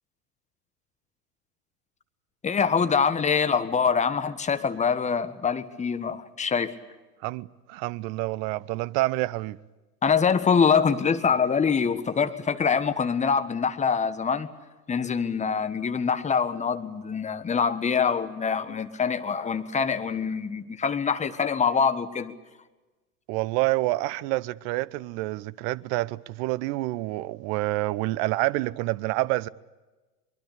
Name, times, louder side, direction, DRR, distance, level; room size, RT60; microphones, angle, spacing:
voice 1, 2.4-6.7 10.0-14.5 14.9-22.3, left 6 dB, 15° left, 1.5 m, -24 dB
voice 2, 7.2-9.6 23.3-29.5, right 19 dB, 40° right, 0.8 m, -28 dB
23.5 x 23.0 x 8.5 m
figure-of-eight pair, 90°, 46 cm